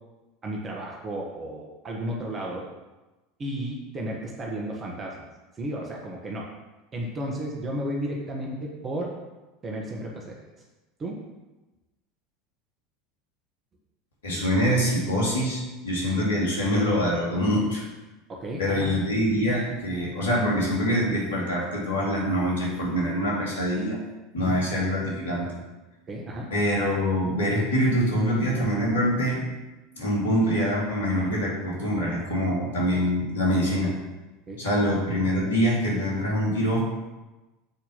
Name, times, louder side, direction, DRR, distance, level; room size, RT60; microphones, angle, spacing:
voice 1, 0.4-2.7 3.4-5.3 5.6-6.5 6.9-9.1 9.6-10.4 11.0-11.2 18.3-18.9 24.4-24.6 26.1-26.5 34.5-34.8, right 1 dB, 30° right, -1 dB, 1.4 m, -33 dB
voice 2, 14.2-17.9 18.6-24.0 24.3-25.6 26.5-29.4 30.0-33.9 34.6-36.8, equal, 80° left, -4 dB, 2.6 m, -24 dB
7.0 x 4.6 x 5.6 m, 1.1 s
hypercardioid pair, 80°, 0 cm